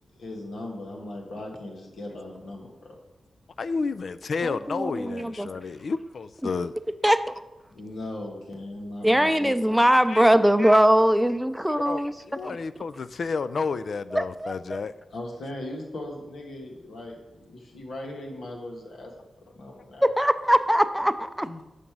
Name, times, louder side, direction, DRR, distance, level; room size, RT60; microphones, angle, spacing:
voice 1, 0.2-3.0 7.7-9.5 15.1-19.1 19.5-20.1 21.4-21.6, left 1 dB, 85° left, 0 dB, 1.5 m, -38 dB
voice 2, 3.6-6.7 10.1-10.3 11.8-12.0 12.3-14.9, left 4 dB, 70° left, 14 dB, 0.3 m, -30 dB
voice 3, 4.4-5.5 7.0-7.4 9.0-12.1 12.4-12.6 14.1-14.8 20.0-21.5, equal, 5° right, 11 dB, 0.5 m, -21 dB
5.3 x 5.1 x 6.0 m, 1.0 s
cardioid pair, 55°, 0 cm